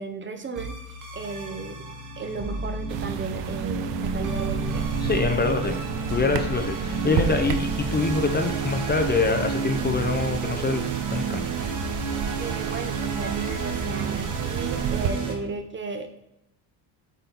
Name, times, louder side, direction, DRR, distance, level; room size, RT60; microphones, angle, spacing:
voice 1, 0.0-1.8 2.2-4.9 12.4-16.2, right 4 dB, 25° right, 6 dB, 0.7 m, -35 dB
sound 1, 0.6-15.3, right 4 dB, 40° right, 1.6 m, -31 dB
sound 2, 2.9-15.1, right 8 dB, 70° right, 0.8 m, -32 dB
voice 2, 5.0-5.8 6.1-10.8 11.1-11.4, left 4 dB, 20° left, 6 dB, 0.6 m, -25 dB
8.2 x 4.2 x 4.0 m, 0.84 s
cardioid pair, 120°, 45 cm